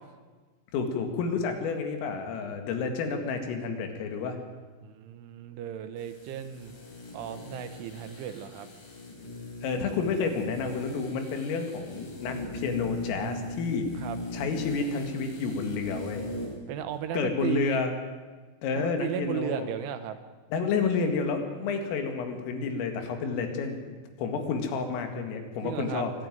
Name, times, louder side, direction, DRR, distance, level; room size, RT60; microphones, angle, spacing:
voice 1, 0.7-4.4 9.6-13.9 14.3-16.3 17.1-17.9 18.6-19.7 20.5-26.1, left 5 dB, 80° left, 5 dB, 4.6 m, -30 dB
voice 2, 4.8-6.7 7.1-8.7 13.9-14.2 16.7-17.8 18.7-20.2 25.6-26.0, right 10 dB, 75° right, 9 dB, 3.3 m, -35 dB
sound 1, 6.0-16.6 16.9-17.0, left 1 dB, 60° left, 7.1 m, -40 dB
23.0 x 13.0 x 9.3 m, 1.4 s
omnidirectional pair, 5.9 m